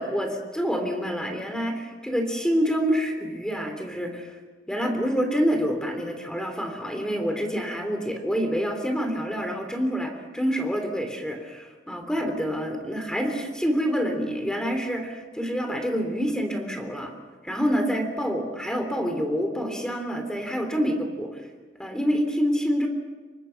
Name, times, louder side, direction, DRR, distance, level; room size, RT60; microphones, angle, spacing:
voice 1, 0.0-4.3 4.7-17.1 17.4-21.4 21.8-22.9, equal, 5° left, 5 dB, 3.4 m, -27 dB
27.5 x 23.5 x 6.0 m, 1.3 s
head